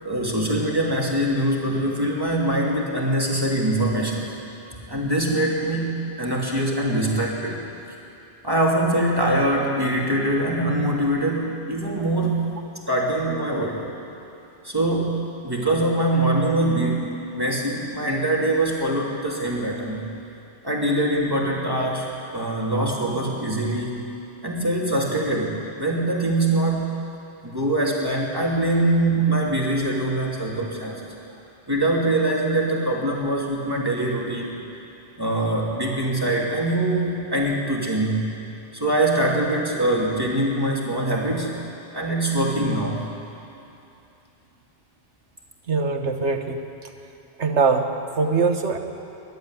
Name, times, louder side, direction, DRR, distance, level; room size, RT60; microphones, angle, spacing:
voice 1, 0.0-4.3 4.9-7.6 8.4-12.5 12.9-13.8 14.6-20.1 20.6-24.1 24.4-27.0 27.4-31.1 31.7-34.6 35.1-38.3 38.7-41.6 41.9-43.1, right 1 dB, 20° right, -3 dB, 2.9 m, -23 dB
voice 2, 45.7-46.6 47.4-48.8, right 4 dB, 75° right, 5 dB, 1.7 m, -22 dB
22.0 x 12.0 x 9.8 m, 2.8 s
omnidirectional pair, 1.2 m